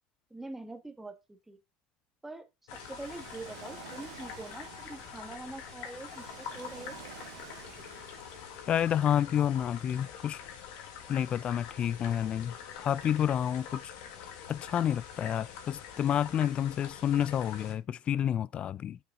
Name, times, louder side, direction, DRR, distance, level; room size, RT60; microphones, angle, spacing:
voice 1, 0.3-1.6 2.2-2.5 2.8-7.0, right 2 dB, 10° right, 1.3 m, -44 dB
sound 1, 2.7-17.7, left 8 dB, 70° left, 1.8 m, -45 dB
Ocean, 2.7-8.6, right 14 dB, 90° right, 0.7 m, -51 dB
voice 2, 8.7-10.4 11.1-13.9 14.5-19.0, left 9 dB, 40° left, 0.3 m, -29 dB
7.9 x 6.4 x 3.7 m
supercardioid pair, 105°, 3 cm